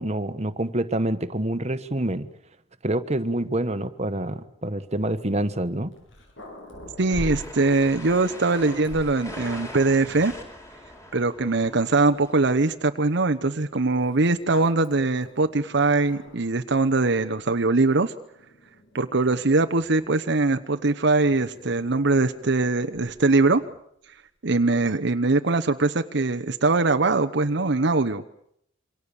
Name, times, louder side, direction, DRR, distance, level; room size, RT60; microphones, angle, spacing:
voice 1, 0.0-2.3 2.8-5.9, right 1 dB, 35° right, 10 dB, 1.3 m, -27 dB
Growling, 5.9-10.5 11.2-11.3 11.6-12.7 13.8-16.6 16.9-17.4 18.3-20.1 21.3-23.8, equal, 65° left, 7.5 m, -44 dB
sound 1, 6.7-12.3, left 1 dB, 15° left, 4.5 m, -42 dB
voice 2, 7.0-10.3 11.1-18.1 18.9-23.6 24.4-28.2, right 3 dB, 60° right, 7 dB, 1.0 m, -22 dB
27.5 x 25.0 x 7.1 m, 0.72 s
head